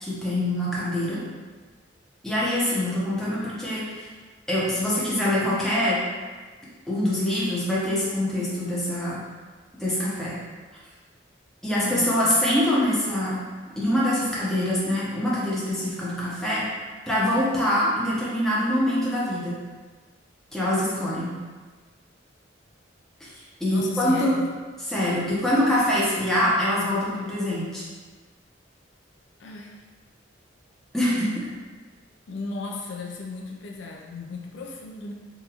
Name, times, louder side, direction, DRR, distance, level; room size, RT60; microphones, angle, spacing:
voice 1, 0.0-1.2 2.2-4.1 4.5-6.0 6.9-9.2 9.8-10.4 11.6-13.4 13.8-16.6 17.1-19.6 20.5-21.4 23.2-24.4 24.9-27.8 30.9-31.5, left 1 dB, ahead, -8 dB, 0.7 m, -24 dB
voice 2, 11.8-12.2 23.7-24.5 29.4-29.8 32.3-35.1, left 4 dB, 65° left, -1 dB, 0.4 m, -35 dB
3.8 x 2.4 x 2.9 m, 1.4 s
head